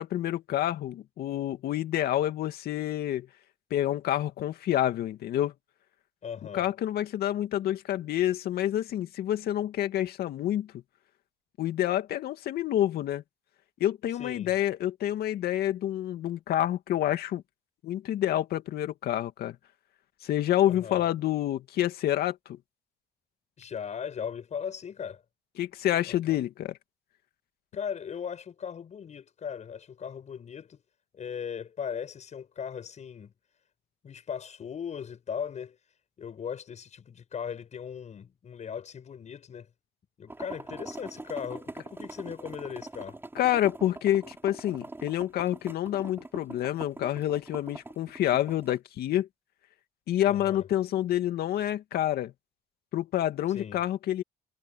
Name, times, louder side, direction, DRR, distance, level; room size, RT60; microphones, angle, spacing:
voice 1, 0.0-3.3 3.7-5.5 6.5-10.7 11.6-13.2 13.8-17.4 17.8-19.6 20.2-22.6 25.6-26.8 43.3-49.3 50.1-52.3 52.9-54.2, left 12 dB, 65° left, 2.4 m, -28 dB
voice 2, 6.2-6.7 14.2-14.5 20.7-21.0 23.6-25.2 26.1-26.4 27.7-30.8 31.1-33.3 34.0-35.8 36.2-39.7 40.2-43.2 50.3-50.6 53.5-53.8, left 7 dB, 45° left, 7.4 m, -38 dB
sound 1, 40.3-48.8, right 2 dB, 15° right, 7.1 m, -43 dB
cardioid pair, 110°, 17 cm